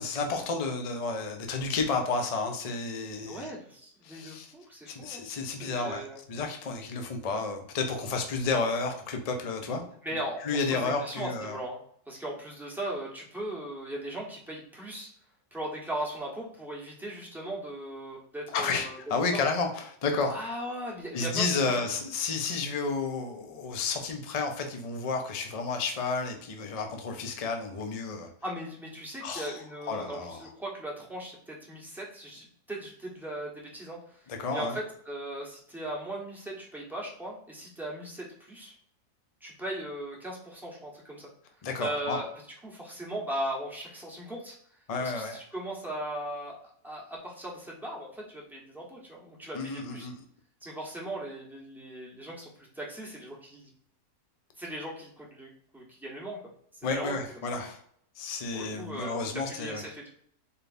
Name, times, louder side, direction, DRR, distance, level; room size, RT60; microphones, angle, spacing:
voice 1, 0.0-3.5 4.0-4.5 4.9-9.8 10.4-11.6 18.5-20.4 21.1-28.3 29.2-29.6 29.9-30.4 34.3-34.8 41.6-42.2 44.9-45.4 49.5-50.2 56.8-57.8 58.2-59.8, left 4 dB, 70° left, 4 dB, 0.3 m, -31 dB
voice 2, 3.3-5.2 5.6-6.2 10.0-11.8 12.1-15.1 15.5-19.0 20.3-21.8 28.4-38.7 39.4-41.3 41.8-42.3 42.6-44.6 45.0-46.5 46.8-50.1 50.6-53.7 54.6-56.4 56.7-57.6 58.5-60.1, right 1 dB, ahead, -4 dB, 1.0 m, -38 dB
4.4 x 3.4 x 2.6 m, 0.64 s
omnidirectional pair, 1.7 m